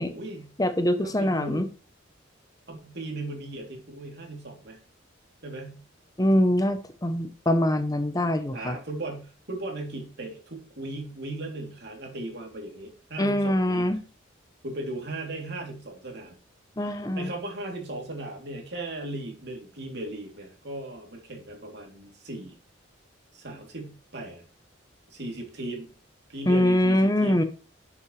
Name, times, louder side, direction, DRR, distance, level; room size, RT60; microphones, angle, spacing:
voice 1, 0.0-0.5 1.0-1.7 2.7-4.8 5.4-5.8 8.5-13.9 14.6-16.4 16.8-22.6 23.3-24.4 25.1-25.9 26.3-27.5, right 2 dB, 55° right, 2 dB, 3.1 m, -37 dB
voice 2, 0.6-1.7 6.2-8.8 13.2-14.0 16.8-17.3 26.5-27.4, left 1 dB, 20° left, 9 dB, 0.8 m, -23 dB
12.0 x 7.3 x 3.3 m, 0.36 s
head